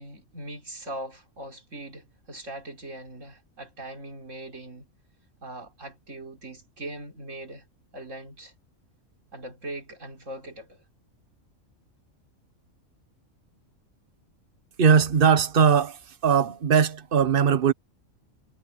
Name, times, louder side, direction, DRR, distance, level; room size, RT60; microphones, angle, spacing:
voice 1, 0.0-4.9 5.4-7.7 7.9-8.5 9.3-10.8, right 1 dB, 65° right, 4.5 m, -40 dB
voice 2, 14.8-17.7, right 7 dB, 45° right, 1.2 m, -20 dB
omnidirectional pair, 1.4 m